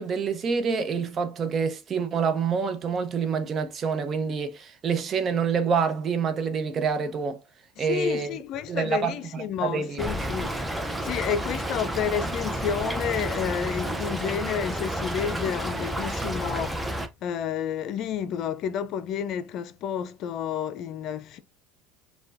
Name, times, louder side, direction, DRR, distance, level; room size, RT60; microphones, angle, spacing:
voice 1, 0.0-7.4 7.8-8.3 8.7-10.3, right 5 dB, 40° right, 0.8 m, -27 dB
voice 2, 7.8-10.8 11.0-21.4, left 8 dB, 55° left, 0.4 m, -30 dB
Stream / Trickle dribble, 10.0-17.1, right 1 dB, 5° right, 0.6 m, -30 dB
6.6 x 2.3 x 2.5 m
supercardioid pair, 95°, 0 cm